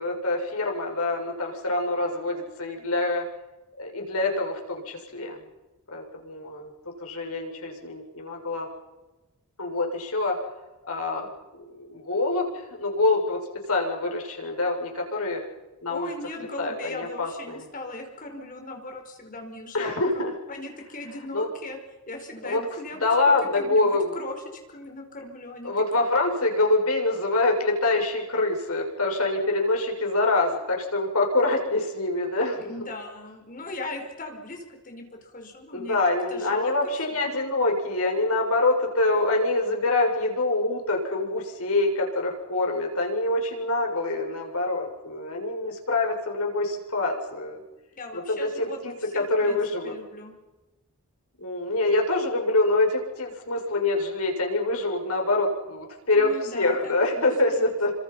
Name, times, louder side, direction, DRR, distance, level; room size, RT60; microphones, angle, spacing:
voice 1, 0.0-3.2 3.8-5.4 5.9-8.7 9.6-10.4 10.9-11.3 11.5-13.4 13.7-15.4 15.8-16.1 16.6-17.6 19.7-20.3 21.3-21.5 22.4-22.6 23.0-24.2 25.6-32.7 35.7-47.6 48.1-48.2 48.6-49.9 51.4-57.9, left 2 dB, 85° left, 1 dB, 6.8 m, -25 dB
voice 2, 15.9-21.8 22.1-26.1 32.6-36.7 37.1-37.3 48.0-49.6 49.8-50.3 56.1-57.3 57.6-57.7, left 2 dB, 40° left, 4 dB, 5.3 m, -39 dB
29.0 x 26.0 x 5.8 m, 1.1 s
head